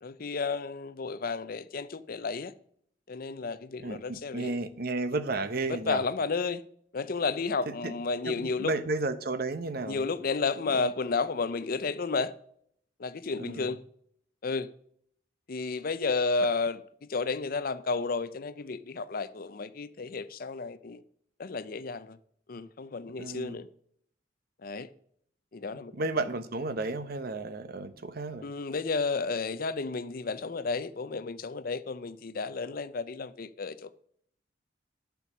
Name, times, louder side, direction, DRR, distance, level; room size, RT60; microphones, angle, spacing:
voice 1, 0.0-2.5 3.1-4.6 5.7-6.7 6.9-8.7 9.9-12.3 13.0-13.8 14.4-14.7 15.5-21.0 21.4-22.2 22.5-23.7 24.6-24.9 25.5-25.9 28.4-33.9, left 4 dB, 50° left, 0.5 m, -32 dB
voice 2, 3.8-6.0 7.8-7.9 8.3-10.1 10.7-10.9 13.4-13.7 23.2-23.6 26.0-28.4, right 2 dB, 55° right, 0.8 m, -33 dB
9.9 x 6.9 x 6.0 m
head